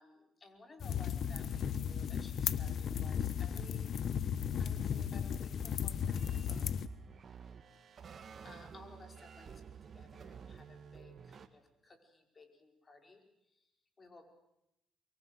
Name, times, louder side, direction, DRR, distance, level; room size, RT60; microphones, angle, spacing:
voice 1, 0.0-4.0 4.6-6.6 7.9-13.7 14.0-14.3, left 2 dB, 30° left, 4 dB, 5.0 m, -58 dB
sound 1, 0.8-6.9, left 8 dB, 60° left, 1.1 m, -35 dB
sound 2, 6.1-11.5, right 6 dB, 50° right, 1.8 m, -52 dB
24.0 x 23.0 x 7.9 m, 0.84 s
cardioid pair, 90°, 0 cm